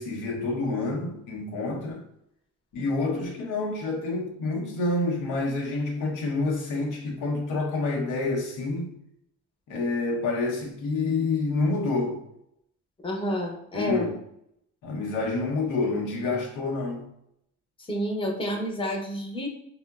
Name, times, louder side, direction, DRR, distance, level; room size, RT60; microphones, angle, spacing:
voice 1, 0.0-2.0 2.7-9.0 9.7-12.2 13.7-14.2 14.8-17.1, left 3 dB, 90° left, 0.8 m, -28 dB
voice 2, 13.0-14.1 17.9-19.5, equal, 15° left, 0.7 m, -29 dB
3.6 x 2.1 x 2.3 m
cardioid pair, 90°, 30 cm